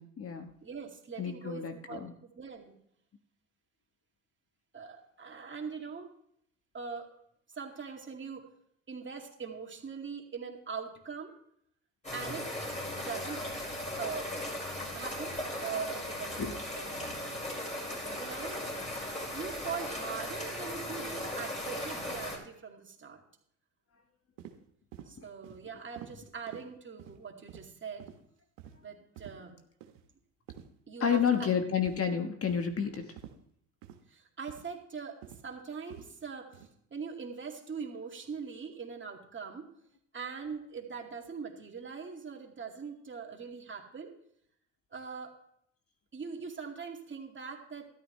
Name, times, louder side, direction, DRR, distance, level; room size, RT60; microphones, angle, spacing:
voice 1, 0.0-0.5 1.2-2.1 16.4-16.5 31.0-33.1, left 7 dB, 40° left, 6 dB, 1.4 m, -30 dB
voice 2, 0.6-2.8 4.7-6.1 6.7-7.1 7.5-8.5 8.9-11.3 12.1-12.5 13.0-13.4 14.0-14.3 14.9-15.3 15.6-17.1 17.9-18.6 19.3-23.2 25.1-28.0 28.8-29.6 30.9-31.5 34.1-39.7 40.1-44.1 44.9-45.4 46.1-47.8, right 6 dB, 30° right, 1 dB, 2.4 m, -42 dB
sound 1, 12.0-22.4, left 1 dB, 20° left, 5.7 m, -37 dB
sound 2, 24.4-24.6 24.9-25.1 25.4-25.6 26.0-26.1 26.5-26.6 27.0-27.2 27.5-27.7 28.0-28.2 28.6-28.7 29.2-29.3 29.8-30.0 30.5-30.7 31.2-31.4 31.8-32.1 32.5-32.7 33.2-33.3 33.8-34.0 34.5-34.7 35.2-35.4 35.9-36.1 36.5-36.7, right 10 dB, 85° right, 1.3 m, -48 dB
13.0 x 11.0 x 3.3 m, 0.69 s
hypercardioid pair, 70°, 37 cm